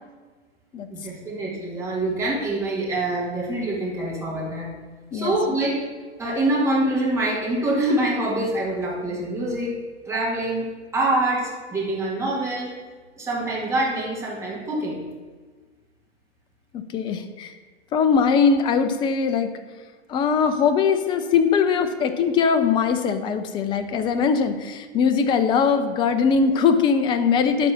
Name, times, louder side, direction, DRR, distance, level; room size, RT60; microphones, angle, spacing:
voice 1, 0.9-4.7 5.1-5.8 6.2-9.8 10.1-12.7 13.2-15.0, right 1 dB, 10° right, -4 dB, 2.3 m, -25 dB
voice 2, 16.7-17.5 17.9-19.5 20.1-27.7, left 6 dB, 15° left, 9 dB, 0.4 m, -21 dB
11.5 x 4.0 x 7.2 m, 1.4 s
hypercardioid pair, 120°, 35 cm